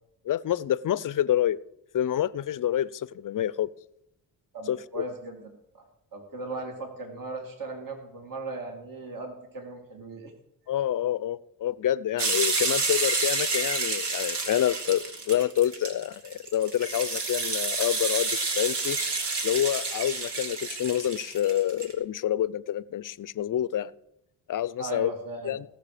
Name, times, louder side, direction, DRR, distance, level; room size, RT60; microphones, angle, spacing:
voice 1, 0.3-1.6 1.9-3.7 4.7-5.0 10.7-19.0 19.4-23.9 24.5-25.1 25.4-25.6, left 11 dB, 45° left, 19 dB, 0.6 m, -27 dB
voice 2, 4.5-5.8 6.1-10.3 24.8-25.6, right 2 dB, 45° right, 2 dB, 2.7 m, -38 dB
sound 1, 12.2-21.9, right 3 dB, 60° right, 2.5 m, -29 dB
17.5 x 6.6 x 5.0 m, 0.81 s
supercardioid pair, 55°, 45 cm